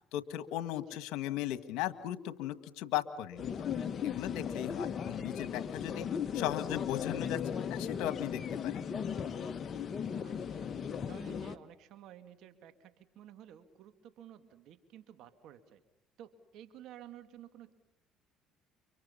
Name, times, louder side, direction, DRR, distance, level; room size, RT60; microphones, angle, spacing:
voice 1, 0.1-3.5 4.0-6.1 6.3-8.8, left 13 dB, 75° left, 12 dB, 1.7 m, -37 dB
sound 1, 3.4-11.6, left 7 dB, 45° left, 1.3 m, -37 dB
voice 2, 10.2-10.7 11.1-15.8 16.2-17.7, right 11 dB, 70° right, 9 dB, 2.3 m, -53 dB
30.0 x 25.0 x 5.7 m, 0.76 s
supercardioid pair, 80°, 0 cm